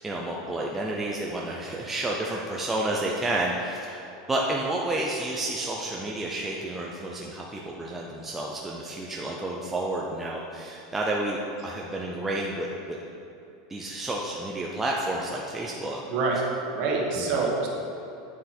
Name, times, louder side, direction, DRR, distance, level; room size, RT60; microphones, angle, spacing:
voice 1, 0.0-11.4 11.6-13.0 13.7-16.0 17.2-17.5, right 2 dB, 5° right, -2 dB, 0.5 m, -30 dB
voice 2, 16.1-17.7, right 3 dB, 40° right, -1 dB, 1.5 m, -26 dB
9.1 x 7.4 x 4.3 m, 2.9 s
supercardioid pair, 180°, 3 cm